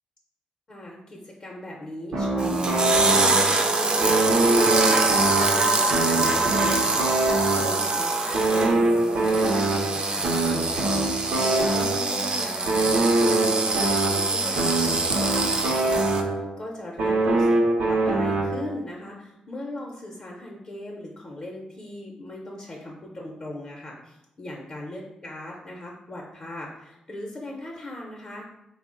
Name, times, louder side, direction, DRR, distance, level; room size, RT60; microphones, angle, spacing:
voice 1, 0.7-13.4 13.7-17.6 17.9-28.5, left 1 dB, 35° left, -1 dB, 0.6 m, -39 dB
sound 1, 2.1-3.7 4.0-8.0 8.3-12.2 12.7-16.6 17.0-18.8, right 2 dB, 80° right, 0.6 m, -24 dB
sound 2, 2.4-16.2, right 3 dB, 35° right, 0.4 m, -24 dB
3.7 x 2.0 x 3.7 m, 0.86 s
cardioid pair, 105°, 2 cm